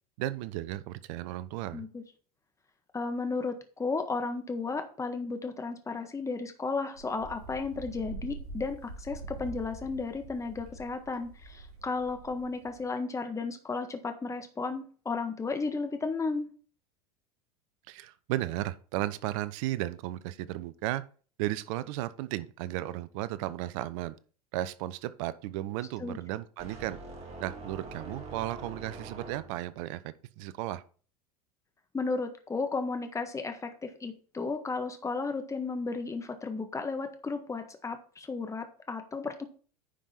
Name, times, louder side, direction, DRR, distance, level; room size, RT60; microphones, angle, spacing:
voice 1, 0.2-1.9 17.9-21.0 21.4-24.1 24.5-27.0 27.4-30.8, right 15 dB, 60° right, 16 dB, 0.8 m, -34 dB
voice 2, 1.7-2.0 2.9-16.5 26.0-26.2 31.9-39.5, left 4 dB, 15° left, 7 dB, 1.5 m, -34 dB
Wind, 7.0-12.9, right 3 dB, 80° right, 4.0 m, -45 dB
sound 1, 26.6-29.8, right 3 dB, 35° right, 3.4 m, -44 dB
10.0 x 5.4 x 4.3 m, 0.40 s
hypercardioid pair, 80°, 19 cm